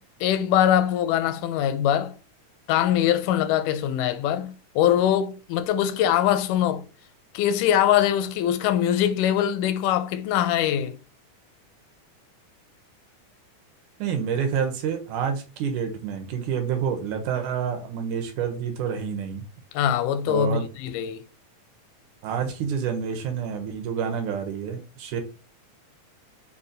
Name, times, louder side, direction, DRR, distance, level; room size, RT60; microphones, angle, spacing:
voice 1, 0.2-2.1 2.7-6.9 7.3-11.0 19.7-21.3, left 10 dB, 85° left, 2.1 m, -22 dB
voice 2, 14.0-19.4 20.3-20.7 22.2-25.2, right 7 dB, 80° right, 2.3 m, -28 dB
4.9 x 2.8 x 3.7 m
omnidirectional pair, 3.5 m